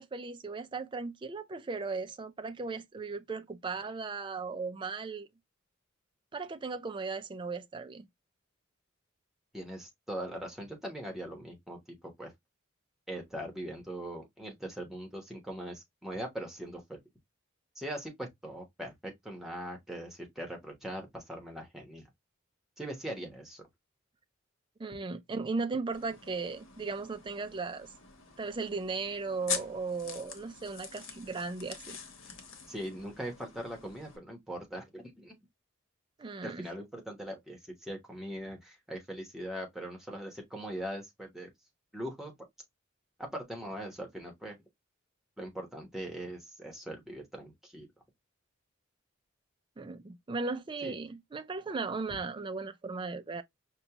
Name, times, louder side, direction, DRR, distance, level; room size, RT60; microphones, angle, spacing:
voice 1, 0.0-5.3 6.3-8.0 24.8-27.9 28.4-32.0 36.2-36.7 49.8-53.4, right 4 dB, 25° right, 0.4 m, -37 dB
voice 2, 9.5-12.3 13.1-17.0 17.8-22.1 22.8-23.6 32.7-35.3 36.4-41.5 41.9-42.3 43.3-44.6 45.4-47.9 50.8-51.0, right 1 dB, ahead, 1.1 m, -41 dB
sound 1, 25.9-34.2, left 6 dB, 90° left, 1.0 m, -44 dB
5.2 x 2.3 x 2.9 m
head